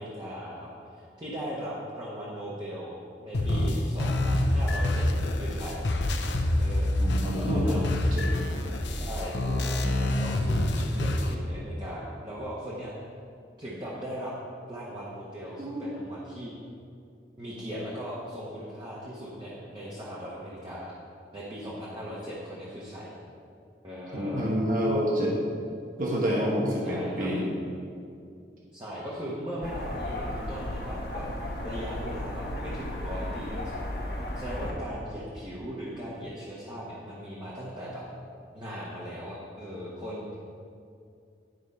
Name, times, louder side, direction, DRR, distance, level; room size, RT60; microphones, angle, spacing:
voice 1, 0.0-3.0 3.2-5.1 5.4-5.8 6.6-6.9 7.4-8.0 8.9-12.9 13.6-14.4 14.7-16.5 17.4-20.9 21.3-23.1 23.8-24.5 26.8-27.3 28.7-34.0 34.3-38.0 38.5-40.4, equal, 25° right, -7 dB, 1.2 m, -38 dB
sound 1, 3.3-11.3, left 1 dB, 80° left, 0.7 m, -27 dB
voice 2, 7.0-7.8 8.1-8.3 15.6-16.0 24.1-25.4 26.0-27.5, equal, 45° right, -4 dB, 1.1 m, -28 dB
sound 2, 29.6-34.7, left 1 dB, 60° left, 1.3 m, -34 dB
11.0 x 4.9 x 5.5 m, 2.4 s
head